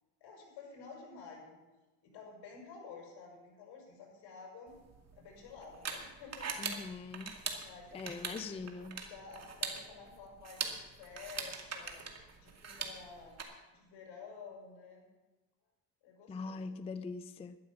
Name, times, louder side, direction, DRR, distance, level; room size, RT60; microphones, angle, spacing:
voice 1, 0.2-1.6 2.0-4.8 5.1-6.9 7.6-8.5 8.8-12.0 12.4-13.4 13.7-15.0 16.0-16.8, left 5 dB, 65° left, 0 dB, 6.1 m, -51 dB
sound 1, 4.7-13.4, right 5 dB, 35° right, 2.3 m, -42 dB
voice 2, 6.6-7.4 7.9-9.0 16.3-17.6, left 4 dB, 15° left, 12 dB, 0.4 m, -42 dB
12.5 x 12.0 x 6.3 m, 1.1 s
cardioid pair, 110°, 45 cm